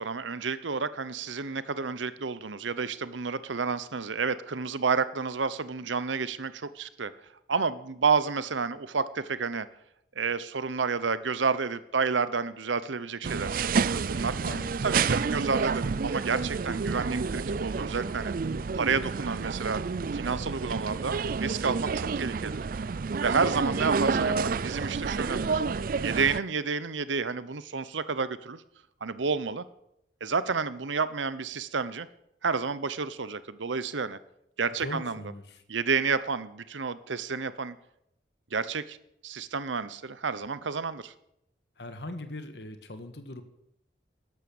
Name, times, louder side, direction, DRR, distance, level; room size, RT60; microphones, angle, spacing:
voice 1, 0.0-7.1 7.5-9.7 10.2-14.4 14.8-18.3 18.7-19.8 20.1-22.7 23.2-25.6 26.0-28.6 29.0-29.6 30.2-32.1 32.4-34.2 34.6-35.2 35.7-37.8 38.5-39.0 39.2-41.1, right 5 dB, 85° right, 15 dB, 0.9 m, -30 dB
sound 1, 13.2-26.4, right 5 dB, 50° right, 0.4 m, -29 dB
voice 2, 14.4-14.9 24.1-24.7 34.8-35.6 41.8-43.4, left 1 dB, 65° left, 9 dB, 1.7 m, -40 dB
13.0 x 11.0 x 7.1 m, 0.79 s
head